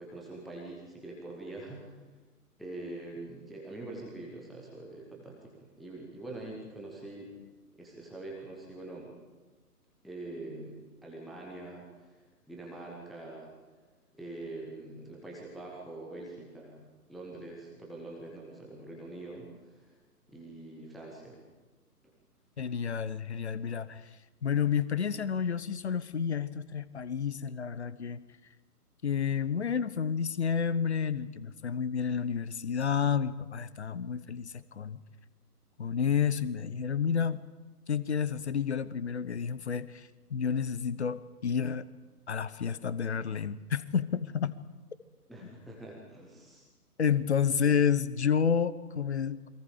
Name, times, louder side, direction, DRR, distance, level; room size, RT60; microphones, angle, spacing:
voice 1, 0.0-2.0 2.6-7.3 7.8-9.1 10.0-12.2 12.5-13.5 14.1-19.9 20.3-21.4 45.3-46.7, right 2 dB, ahead, -3 dB, 0.9 m, -44 dB
voice 2, 22.6-24.0 24.4-28.2 29.0-35.0 35.8-37.4 37.9-41.9 42.3-44.6 47.0-49.5, left 7 dB, 45° left, 16 dB, 1.1 m, -30 dB
28.5 x 22.5 x 5.1 m, 1.2 s
figure-of-eight pair, 135°, 46 cm